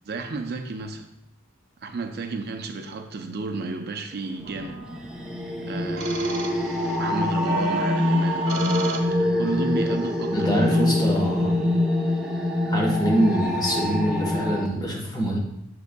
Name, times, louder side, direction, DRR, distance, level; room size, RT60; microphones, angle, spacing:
voice 1, 0.1-1.1 1.8-4.8 5.6-6.3 7.0-8.4 9.4-11.3, right 3 dB, 50° right, 6 dB, 0.5 m, -32 dB
sound 1, 4.4-5.0 6.0-7.0 7.5-9.5, right 3 dB, 80° right, 1.1 m, -34 dB
sound 2, 4.5-14.7, left 1 dB, 5° right, 0.6 m, -25 dB
voice 2, 10.3-11.6 12.7-15.4, equal, 20° left, -1 dB, 1.2 m, -24 dB
7.8 x 6.7 x 2.2 m, 0.82 s
head